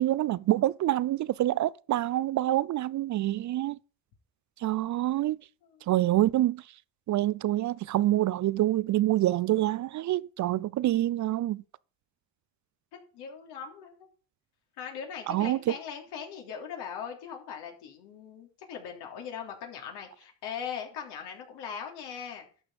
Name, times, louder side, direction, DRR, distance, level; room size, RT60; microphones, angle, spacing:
voice 1, 0.0-3.8 4.6-5.4 5.9-6.6 7.1-11.6 15.3-15.7, right 14 dB, 45° right, 0.5 m, -26 dB
voice 2, 13.1-14.1 14.8-22.5, left 7 dB, 75° left, 3.3 m, -40 dB
11.5 x 6.7 x 5.0 m
supercardioid pair, 80°, 40 cm